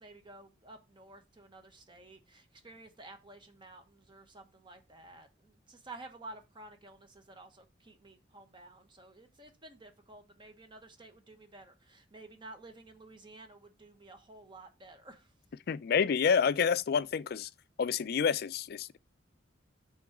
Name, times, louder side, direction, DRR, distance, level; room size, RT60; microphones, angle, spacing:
voice 1, 0.0-15.3, right 2 dB, 25° right, 1.1 m, -52 dB
voice 2, 15.7-17.5 17.8-19.0, left 6 dB, 55° left, 0.4 m, -28 dB
6.1 x 3.7 x 5.9 m
head